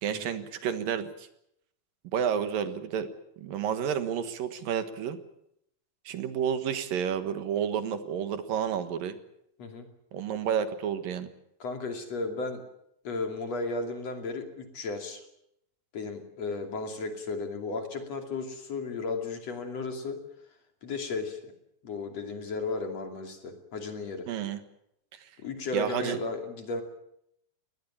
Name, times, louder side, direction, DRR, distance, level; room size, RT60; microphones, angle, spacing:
voice 1, 0.0-1.3 2.1-3.1 3.4-5.2 6.1-9.2 10.1-11.3 24.3-24.6 25.1-25.3 25.7-26.2, right 8 dB, 75° right, 10 dB, 3.1 m, -30 dB
voice 2, 11.6-12.6 13.0-15.2 15.9-20.2 20.8-21.5 21.8-24.3 25.4-26.8, left 3 dB, 50° left, 5 dB, 3.6 m, -34 dB
22.0 x 19.0 x 8.7 m, 0.76 s
omnidirectional pair, 4.1 m